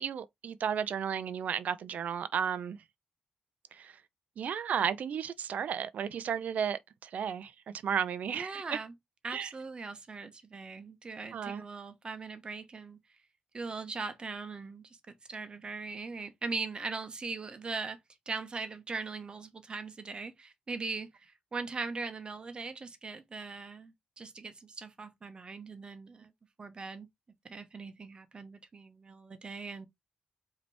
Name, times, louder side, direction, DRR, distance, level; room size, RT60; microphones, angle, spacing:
voice 1, 0.0-2.8 3.7-3.9 4.4-7.5 7.8-8.8 9.3-9.5 11.3-11.6, right 8 dB, 65° right, 0.5 m, -33 dB
voice 2, 8.3-8.9 9.2-13.0 13.5-18.0 18.3-26.3 26.6-27.1 27.4-29.9, right 4 dB, 35° right, 0.9 m, -40 dB
5.2 x 2.9 x 3.3 m
cardioid pair, 110°, 3 cm